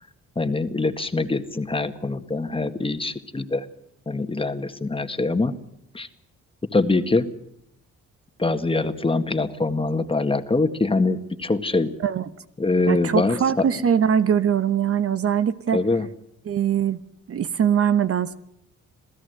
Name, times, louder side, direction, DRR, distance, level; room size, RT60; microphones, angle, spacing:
voice 1, 0.4-3.7 4.1-5.5 5.9-6.1 6.7-7.3 8.4-11.9 12.6-13.7 15.7-16.1, left 3 dB, 20° left, 8 dB, 1.7 m, -24 dB
voice 2, 12.9-15.8 16.5-17.0 17.3-18.3, right 8 dB, 50° right, 12 dB, 1.1 m, -22 dB
27.5 x 16.0 x 8.0 m, 0.78 s
cardioid pair, 90°, 30 cm